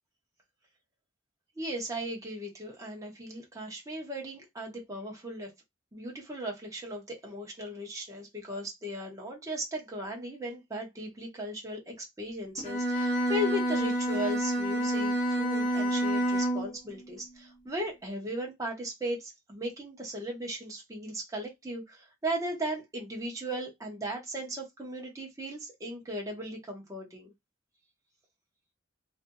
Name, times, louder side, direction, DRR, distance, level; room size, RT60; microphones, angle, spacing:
voice 1, 1.6-5.5 5.9-27.3, equal, 15° right, 0.8 m, -37 dB
Bowed string instrument, 12.6-16.8, right 1 dB, 30° left, 0.8 m, -28 dB
2.6 x 2.5 x 2.6 m
head